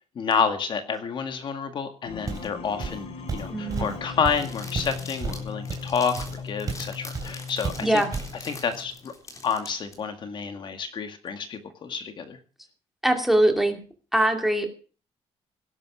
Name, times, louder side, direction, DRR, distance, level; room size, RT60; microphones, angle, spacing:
voice 1, 0.2-8.0 8.4-9.1 9.4-12.4, left 6 dB, 45° left, 7 dB, 1.9 m, -29 dB
sound 1, 2.0-9.1, left 5 dB, 75° left, 4.7 m, -39 dB
Walk footsteps, 2.3-2.5 2.8-6.9 7.1-7.4 7.6-8.4, right 5 dB, 35° right, 3.1 m, -33 dB
voice 2, 3.5-3.9 7.8-8.1 13.0-13.8 14.1-14.7, right 1 dB, ahead, 4 dB, 2.5 m, -22 dB
sound 2, 4.3-9.9, left 3 dB, 30° left, 3.9 m, -43 dB
18.0 x 11.0 x 6.2 m, 0.39 s
cardioid pair, 170°, 11 cm